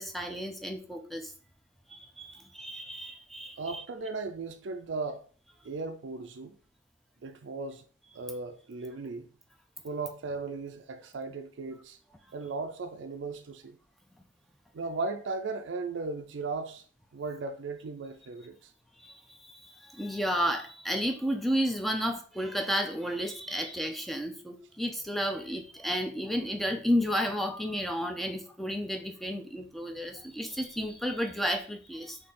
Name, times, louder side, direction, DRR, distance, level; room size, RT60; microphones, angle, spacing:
voice 1, 0.0-1.3 1.9-3.8 19.0-32.2, equal, ahead, 0.5 m, -32 dB
voice 2, 3.6-5.2 5.6-6.6 7.2-7.8 8.1-9.3 9.8-12.0 12.3-13.8 14.7-16.8 17.1-18.7, right 3 dB, 70° right, 0.4 m, -36 dB
3.7 x 2.8 x 4.1 m
head